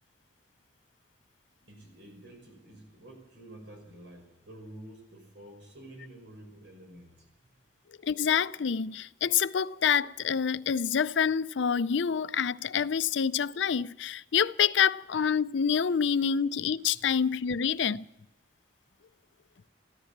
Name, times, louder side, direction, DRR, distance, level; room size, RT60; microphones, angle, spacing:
voice 1, 1.7-7.3 16.9-17.1, right 1 dB, 70° right, 6.0 m, -49 dB
voice 2, 8.0-18.0, left 7 dB, 70° left, 0.5 m, -27 dB
14.5 x 13.5 x 7.3 m
head